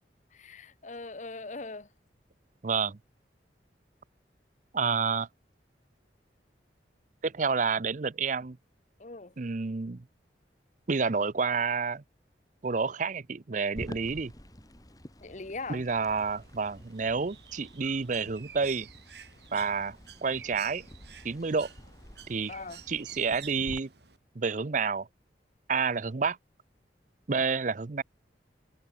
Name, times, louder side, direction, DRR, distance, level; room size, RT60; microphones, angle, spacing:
voice 1, 0.3-1.9 9.0-9.3 15.2-15.8 22.5-22.8, left 3 dB, 40° left, 1.0 m, -40 dB
voice 2, 2.6-3.0 4.7-5.3 7.2-8.6 9.4-10.0 10.9-12.0 12.6-14.3 15.7-18.9 19.5-20.0 20.2-20.9 21.2-21.7 22.3-22.5 22.9-23.9 24.4-25.1 25.7-26.4 27.3-28.0, right 5 dB, 45° right, 0.6 m, -29 dB
sound 1, 13.8-23.8, equal, 20° left, 4.4 m, -49 dB
Bird, 16.1-24.2, right 9 dB, 70° right, 3.7 m, -51 dB
head